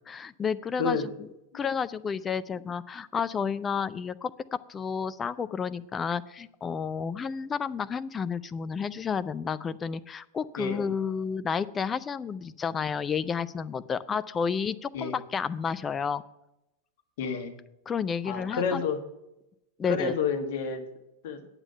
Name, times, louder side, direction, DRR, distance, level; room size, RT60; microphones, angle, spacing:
voice 1, 0.1-1.0 1.5-16.2 17.9-18.8 19.8-20.1, left 6 dB, 20° left, 15 dB, 0.4 m, -31 dB
voice 2, 17.2-17.5 18.2-19.0 19.9-20.8 21.2-21.4, left 5 dB, 55° left, 6 dB, 1.5 m, -29 dB
8.8 x 8.3 x 5.6 m, 0.87 s
figure-of-eight pair, 90°, 0 cm